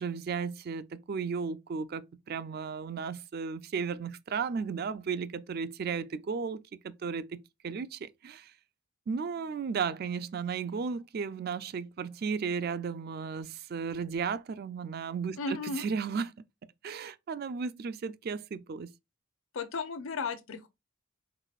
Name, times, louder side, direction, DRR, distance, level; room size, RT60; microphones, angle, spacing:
voice 1, 0.0-8.5 9.1-16.4 16.8-18.9, right 5 dB, 45° right, 0.3 m, -35 dB
voice 2, 15.4-15.9 19.5-20.7, left 4 dB, 65° left, 0.6 m, -34 dB
4.8 x 4.1 x 2.4 m
head